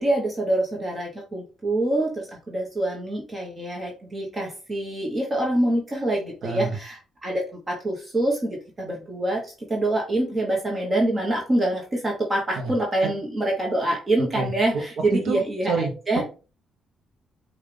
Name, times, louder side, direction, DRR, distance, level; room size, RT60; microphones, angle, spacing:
voice 1, 0.0-16.2, right 1 dB, 25° right, -1 dB, 1.2 m, -25 dB
voice 2, 6.4-6.8 12.6-12.7 14.3-14.8 15.1-15.9 16.2-16.3, right 4 dB, 70° right, 5 dB, 0.9 m, -28 dB
5.5 x 2.5 x 3.4 m, 0.34 s
cardioid pair, 90°, 0 cm